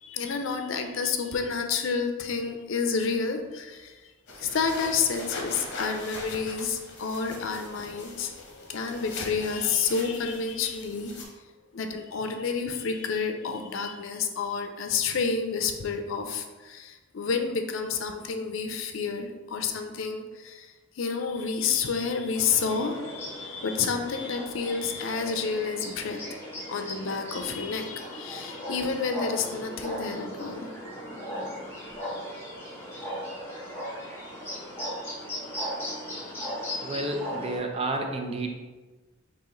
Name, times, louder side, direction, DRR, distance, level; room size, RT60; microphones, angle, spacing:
voice 1, 0.0-3.9 4.4-11.1 11.7-20.7 21.0-26.2 26.7-30.7, left 5 dB, 75° left, 6 dB, 0.5 m, -29 dB
sound 1, 4.3-11.2, left 2 dB, 60° left, 0.9 m, -42 dB
sound 2, 4.3-7.5 8.8-9.6 10.8-10.9 11.1-11.2, equal, 75° right, 1.1 m, -49 dB
sound 3, 22.3-37.6, equal, 10° left, 0.9 m, -37 dB
voice 2, 36.8-38.5, right 2 dB, 30° right, 3 dB, 0.5 m, -30 dB
4.8 x 2.9 x 3.8 m, 1.3 s
head